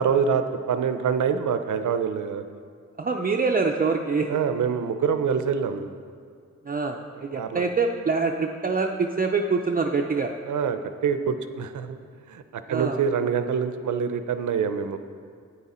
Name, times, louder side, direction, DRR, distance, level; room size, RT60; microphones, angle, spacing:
voice 1, 0.0-2.4 4.3-6.0 7.3-7.7 10.4-12.0 12.3-15.0, right 6 dB, 90° right, 9 dB, 0.6 m, -25 dB
voice 2, 3.0-4.4 6.7-10.3 12.7-13.0, right 4 dB, 30° right, 2 dB, 0.4 m, -25 dB
11.0 x 9.0 x 4.2 m, 2.2 s
wide cardioid pair, 165°, 29 cm